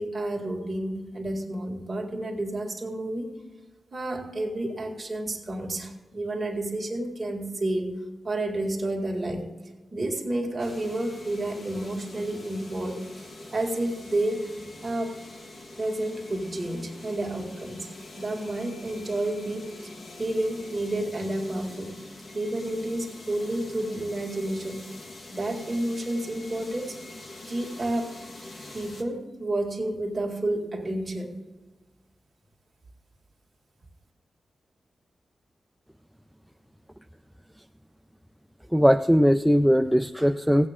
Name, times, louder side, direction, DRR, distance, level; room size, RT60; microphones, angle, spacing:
voice 1, 0.0-3.3 3.9-8.0 8.2-9.5 9.9-13.0 13.5-14.5 14.8-15.2 15.8-17.9 18.2-19.9 20.2-22.0 22.3-24.8 25.3-27.0 27.5-28.2 28.7-31.4, right 1 dB, 25° right, 0 dB, 2.1 m, -30 dB
sound 1, 10.6-29.0, left 2 dB, 55° left, 1.4 m, -44 dB
voice 2, 38.7-40.7, equal, ahead, 6 dB, 0.3 m, -20 dB
16.5 x 8.6 x 3.7 m, 1.2 s
wide cardioid pair, 160°, 0 cm